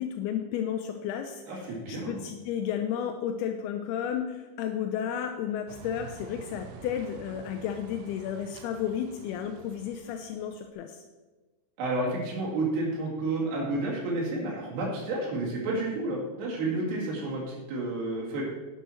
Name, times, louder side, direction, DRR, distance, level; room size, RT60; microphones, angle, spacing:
voice 1, 0.0-11.0, left 9 dB, 80° left, 5 dB, 2.3 m, -33 dB
voice 2, 1.5-2.2 11.8-18.4, right 2 dB, 70° right, -4 dB, 4.4 m, -30 dB
sound 1, 5.7-10.7, right 8 dB, 90° right, 2.9 m, -48 dB
11.0 x 8.2 x 4.3 m, 1.2 s
omnidirectional pair, 5.0 m